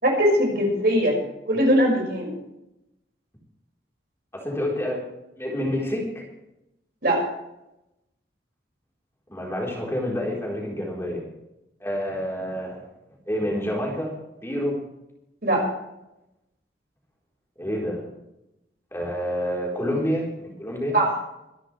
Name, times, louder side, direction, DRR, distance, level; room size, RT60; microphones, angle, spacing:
voice 1, 0.0-1.2 1.5-2.4 7.0-7.2 15.4-15.7 20.9-21.1, equal, 55° right, 0 dB, 5.8 m, -20 dB
voice 2, 4.3-5.0 5.4-6.2 9.3-11.2 11.8-12.9 13.3-14.8 17.6-18.0 18.9-21.0, equal, 15° left, -3 dB, 4.1 m, -28 dB
24.5 x 12.0 x 3.4 m, 0.88 s
head